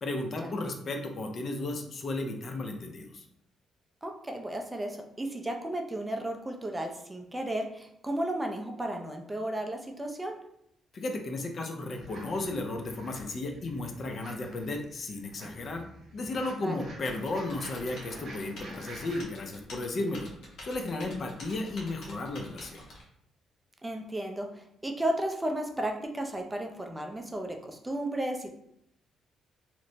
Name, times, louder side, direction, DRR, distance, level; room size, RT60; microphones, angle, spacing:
voice 1, 0.0-3.2 10.9-15.8 16.1-20.3 20.6-22.9, left 2 dB, 50° left, 4 dB, 0.4 m, -34 dB
voice 2, 4.0-10.4 16.6-16.8 23.8-28.5, right 1 dB, 15° right, 3 dB, 0.4 m, -34 dB
sound 1, 11.9-19.2, right 1 dB, 55° right, 1.0 m, -48 dB
Typing, 17.0-23.0, left 1 dB, 70° left, 0.9 m, -48 dB
2.9 x 2.1 x 2.6 m, 0.75 s
cardioid pair, 90°, 0 cm